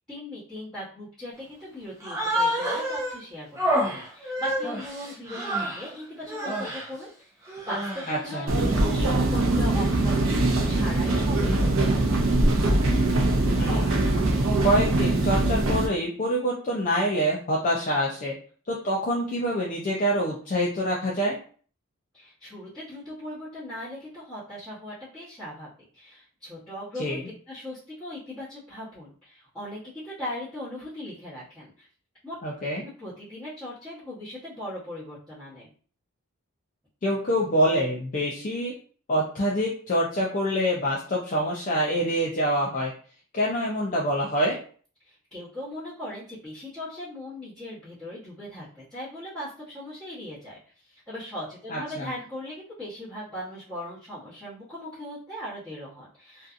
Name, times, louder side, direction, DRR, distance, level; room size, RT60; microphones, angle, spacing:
voice 1, 0.1-3.5 3.8-12.4 22.1-27.2 27.5-31.9 32.2-32.3 32.8-35.7 45.0-56.5, left 1 dB, 5° left, -15 dB, 1.0 m, -39 dB
Human voice, 2.0-3.2 3.6-5.9 6.3-6.9 7.5-8.2, equal, 15° right, 0.6 m, -28 dB
voice 2, 8.1-8.5 13.6-14.0 14.6-18.3 18.7-21.4 27.0-27.2 32.4-32.8 37.0-38.7 39.1-42.9 43.3-44.6 51.7-52.1, equal, 35° left, -3 dB, 0.4 m, -26 dB
sound 1, 8.5-15.9, right 2 dB, 70° right, 0.6 m, -22 dB
2.6 x 2.3 x 2.4 m, 0.43 s
head